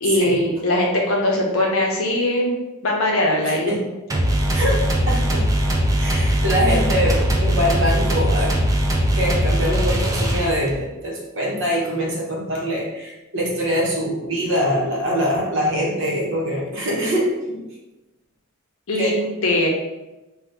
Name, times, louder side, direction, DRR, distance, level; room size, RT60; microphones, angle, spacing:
voice 1, 0.0-2.5 2.8-3.8 18.9-19.1 19.4-19.7, left 1 dB, 70° left, 0 dB, 0.7 m, -20 dB
voice 2, 3.4-3.8 4.5-5.5 6.0-8.6 9.1-17.6 19.0-19.2, equal, 60° right, -3 dB, 0.8 m, -23 dB
sound 1, 4.1-10.8, equal, 15° right, 0.3 m, -20 dB
2.7 x 2.2 x 3.3 m, 1.0 s
head